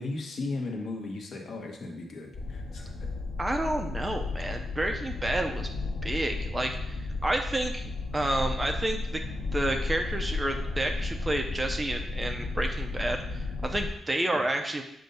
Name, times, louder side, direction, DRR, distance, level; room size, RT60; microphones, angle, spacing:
voice 1, 0.0-3.1 14.3-14.4, left 3 dB, 50° left, 1 dB, 1.1 m, -36 dB
sound 1, 2.3-13.9, left 3 dB, 85° left, 1.1 m, -33 dB
voice 2, 3.4-5.7 6.0-9.2 9.5-14.8, right 1 dB, 15° right, 4 dB, 0.4 m, -30 dB
7.7 x 2.6 x 5.3 m, 0.81 s
wide cardioid pair, 170°, 0 cm